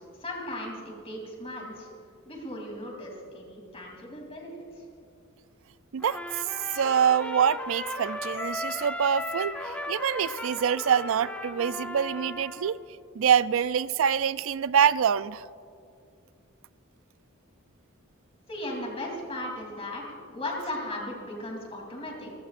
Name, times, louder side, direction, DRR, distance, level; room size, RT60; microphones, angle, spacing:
voice 1, 0.0-1.9 2.2-4.8 18.5-22.3, left 1 dB, 30° left, 3.3 m, -37 dB
Trumpet, 6.0-12.7, left 1 dB, 5° left, 1.3 m, -36 dB
voice 2, 6.7-12.8 13.2-15.4, right 8 dB, 65° right, 0.4 m, -25 dB
29.0 x 16.0 x 2.6 m
head